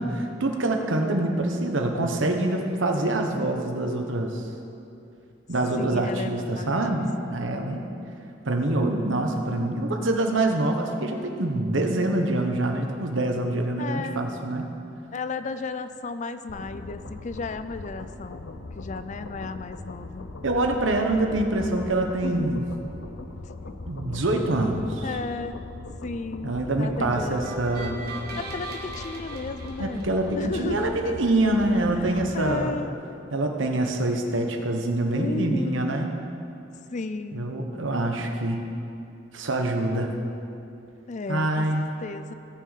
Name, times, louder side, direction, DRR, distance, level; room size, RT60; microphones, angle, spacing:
voice 1, 0.0-4.4 5.5-7.8 8.4-14.7 20.4-22.6 23.9-25.1 26.4-28.0 29.8-32.7 33.3-36.2 37.3-38.6 39.3-40.1 41.3-41.9, right 2 dB, 90° right, 3 dB, 1.1 m, -25 dB
voice 2, 5.7-7.0 7.3-7.4 13.8-14.2 15.1-20.3 22.2-22.6 23.6-23.7 25.0-25.6 26.0-27.4 28.4-30.1 30.4-31.2 31.9-33.0 35.1-36.1 36.9-37.5 41.1-42.3, left 3 dB, 40° left, 11 dB, 0.4 m, -34 dB
sound 1, 16.5-32.6, left 2 dB, 80° left, 0.7 m, -40 dB
sound 2, 27.4-30.7, right 2 dB, 55° right, 1.5 m, -39 dB
17.5 x 6.4 x 4.1 m, 2.7 s
head